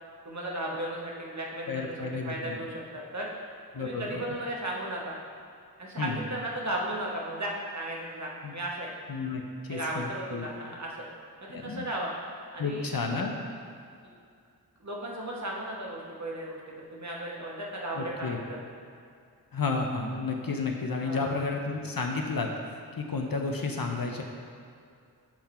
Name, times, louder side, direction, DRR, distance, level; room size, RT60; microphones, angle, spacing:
voice 1, 0.2-3.3 3.8-5.2 5.8-8.9 9.7-11.0 11.4-12.2 12.5-12.9 14.8-18.4 21.0-21.3, right 1 dB, 45° right, -3 dB, 1.1 m, -35 dB
voice 2, 1.7-2.6 3.7-4.2 6.0-6.2 8.4-8.5 9.1-9.4 9.7-10.5 11.5-11.9 12.6-13.3 17.9-18.4 19.5-24.2, left 4 dB, 60° left, 2 dB, 0.7 m, -32 dB
7.6 x 3.7 x 4.3 m, 2.3 s
wide cardioid pair, 45°, 40 cm